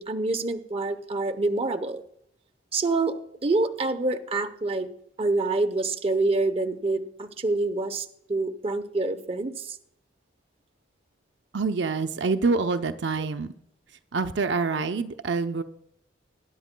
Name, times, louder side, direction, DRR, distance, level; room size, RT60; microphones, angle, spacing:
voice 1, 0.0-2.0 2.7-3.2 3.4-4.9 5.2-9.8, right 3 dB, 30° right, 7 dB, 0.8 m, -26 dB
voice 2, 11.5-13.5 14.1-15.6, right 4 dB, 70° right, 8 dB, 0.6 m, -26 dB
20.5 x 11.0 x 2.2 m, 0.72 s
head